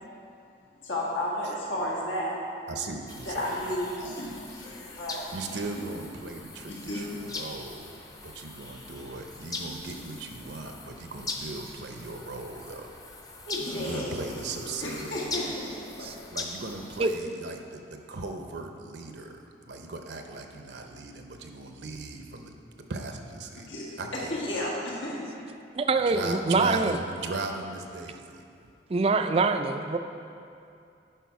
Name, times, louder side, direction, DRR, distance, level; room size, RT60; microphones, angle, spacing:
voice 1, 0.8-2.9 3.3-5.3 6.7-7.1 13.5-16.1 23.6-24.0 24.3-25.2, left 1 dB, 90° left, -5 dB, 1.9 m, -33 dB
voice 2, 2.7-3.8 5.3-13.0 13.7-15.6 16.3-22.6 22.9-23.7 24.0-24.4 26.1-28.4, right 3 dB, 65° right, 4 dB, 0.7 m, -38 dB
sound 1, 3.1-17.2, left 3 dB, 20° left, 0.6 m, -41 dB
voice 3, 25.8-27.0 28.9-30.0, right 3 dB, 30° right, 8 dB, 0.3 m, -24 dB
10.0 x 5.4 x 4.7 m, 2.5 s
head